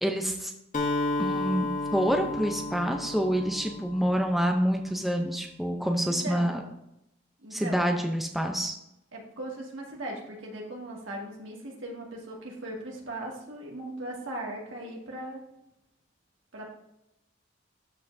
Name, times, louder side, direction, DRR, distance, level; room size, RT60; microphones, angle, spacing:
voice 1, 0.0-0.5 1.2-1.7 1.9-6.6 7.5-8.8, equal, ahead, 3 dB, 0.5 m, -27 dB
Acoustic guitar, 0.7-4.6, left 2 dB, 40° left, 1.0 m, -32 dB
voice 2, 6.0-6.5 7.4-7.8 9.1-15.4 16.5-16.6, right 1 dB, 70° right, -2 dB, 2.0 m, -38 dB
13.0 x 5.4 x 2.6 m, 0.84 s
head